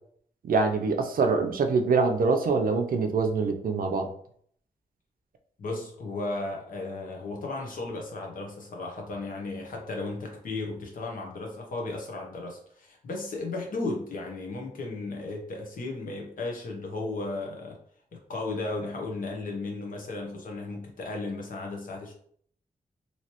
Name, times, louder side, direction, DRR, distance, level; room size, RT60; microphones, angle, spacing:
voice 1, 0.4-4.1, right 4 dB, 80° right, 5 dB, 0.5 m, -24 dB
voice 2, 5.6-17.8 18.1-22.1, left 2 dB, 70° left, 0 dB, 0.9 m, -35 dB
3.1 x 2.8 x 2.9 m, 0.62 s
wide cardioid pair, 130°, 14 cm